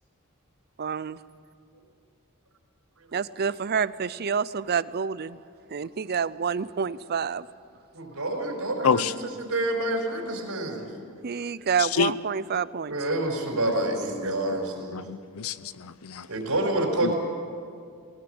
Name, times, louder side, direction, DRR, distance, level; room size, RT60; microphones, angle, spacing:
voice 1, 0.8-1.2 3.1-5.4 5.7-7.5 11.2-13.0, right 6 dB, 45° right, 0.5 m, -28 dB
voice 2, 7.9-10.8 12.9-15.0 16.3-17.1, right 1 dB, 90° right, 4.5 m, -28 dB
voice 3, 11.8-12.1 14.9-16.3 17.0-17.1, left 6 dB, 75° left, 0.7 m, -27 dB
19.5 x 19.0 x 7.9 m
head